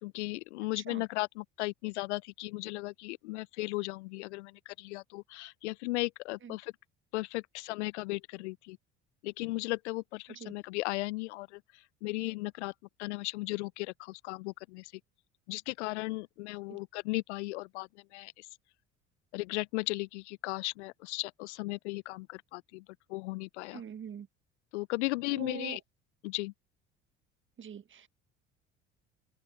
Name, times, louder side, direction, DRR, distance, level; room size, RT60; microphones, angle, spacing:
voice 1, 0.0-6.7 7.1-8.8 9.2-12.7 13.0-14.9 15.5-18.5 19.3-22.8 23.1-23.8 24.7-25.8 26.2-26.5, left 22 dB, 70° left, 0.6 m, -36 dB
voice 2, 23.7-24.3 25.3-25.8 27.6-28.1, right 8 dB, 35° right, 1.7 m, -43 dB
open air
figure-of-eight pair, 60°, 36 cm